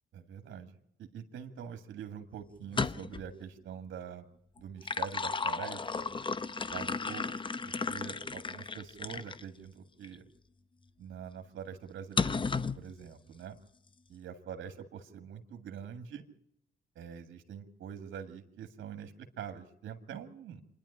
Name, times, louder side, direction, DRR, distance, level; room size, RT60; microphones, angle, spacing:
voice 1, 0.1-4.3 4.6-6.1 6.7-10.3 11.0-12.4 12.8-13.6 14.1-16.2 17.0-20.6, right 8 dB, 70° right, 6 dB, 2.0 m, -45 dB
sound 1, 2.6-3.3 4.6-9.4 10.0-10.2 12.2-12.8, left 4 dB, 25° left, 0.7 m, -34 dB
26.0 x 10.5 x 9.9 m, 0.73 s
cardioid pair, 90°, 20 cm